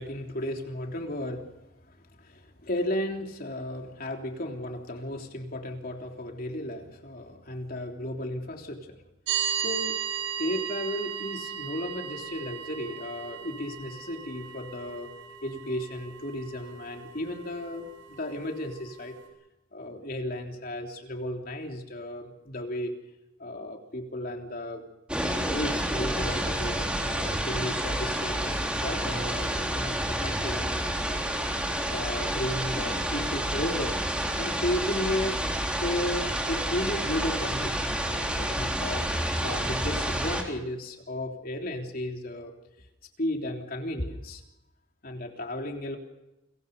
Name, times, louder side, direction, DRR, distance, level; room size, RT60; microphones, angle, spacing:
voice 1, 0.0-1.5 2.2-8.8 9.6-9.9 10.4-15.1 15.4-19.2 19.7-22.9 23.4-24.9 25.4-31.2 31.9-34.0 34.4-35.4 35.8-39.1 39.4-42.5 43.2-44.4 45.0-46.0, left 1 dB, 50° left, 3 dB, 3.4 m, -34 dB
sound 1, 9.3-19.3, right 8 dB, 70° right, 7.8 m, -36 dB
sound 2, 25.1-40.4, right 1 dB, 5° right, 3.7 m, -29 dB
30.0 x 23.5 x 5.4 m, 0.95 s
head